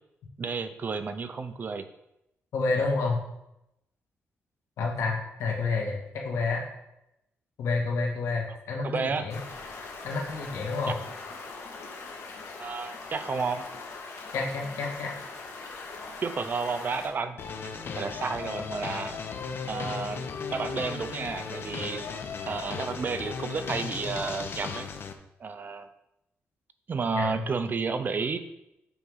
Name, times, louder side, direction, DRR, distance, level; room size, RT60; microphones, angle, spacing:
voice 1, 0.4-1.9 8.8-9.3 10.9-11.0 12.6-13.7 16.2-17.4 17.9-19.2 19.7-22.0 22.5-24.9 25.4-25.9 26.9-28.4, right 4 dB, 40° right, 10 dB, 0.6 m, -31 dB
voice 2, 2.5-3.2 4.8-6.6 7.6-9.4 10.0-10.9 14.3-15.1 27.1-27.4, left 3 dB, 90° left, -1 dB, 2.0 m, -29 dB
Stream, 9.3-17.1, left 3 dB, 75° left, 1.8 m, -41 dB
sound 1, 17.4-25.1, left 5 dB, 50° left, 0.8 m, -36 dB
6.9 x 4.8 x 5.5 m, 0.85 s
cardioid pair, 120°, 5 cm